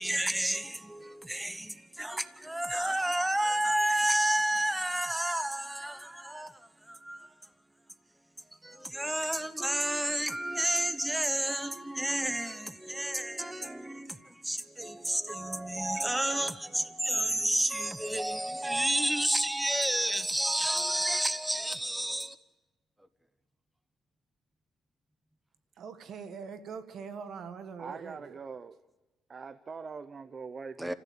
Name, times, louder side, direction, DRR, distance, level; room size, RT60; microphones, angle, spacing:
voice 1, 0.0-7.3 8.6-22.4 30.8-30.9, right 1 dB, 10° right, 0.9 m, -30 dB
voice 2, 25.8-28.4, right 6 dB, 65° right, 1.5 m, -43 dB
voice 3, 27.8-28.8 29.3-30.9, right 5 dB, 40° right, 0.7 m, -42 dB
28.5 x 15.0 x 8.5 m
cardioid pair, 90°, 0 cm